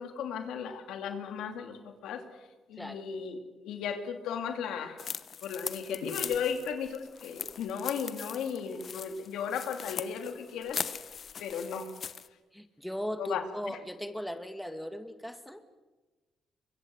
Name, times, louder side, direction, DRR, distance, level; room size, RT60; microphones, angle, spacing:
voice 1, 0.0-2.2 2.7-3.4 3.6-5.1 5.4-11.1 11.4-11.9 13.2-13.8, left 7 dB, 85° left, 6 dB, 2.9 m, -35 dB
sound 1, 5.0-12.3, left 7 dB, 50° left, 1.0 m, -40 dB
voice 2, 12.5-15.6, equal, 5° left, 8 dB, 2.0 m, -38 dB
24.5 x 23.5 x 8.0 m, 1.2 s
cardioid pair, 90°, 0 cm